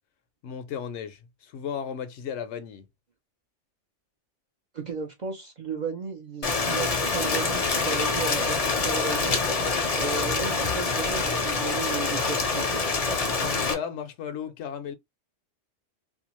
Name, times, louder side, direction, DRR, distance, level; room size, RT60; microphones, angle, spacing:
voice 1, 0.4-2.9 13.4-14.9, left 8 dB, 75° left, 0.8 m, -35 dB
voice 2, 4.7-9.4 9.9-12.8, right 5 dB, 50° right, 0.6 m, -34 dB
Rain, 6.4-13.7, left 4 dB, 40° left, 0.5 m, -26 dB
2.6 x 2.3 x 2.9 m
omnidirectional pair, 1.2 m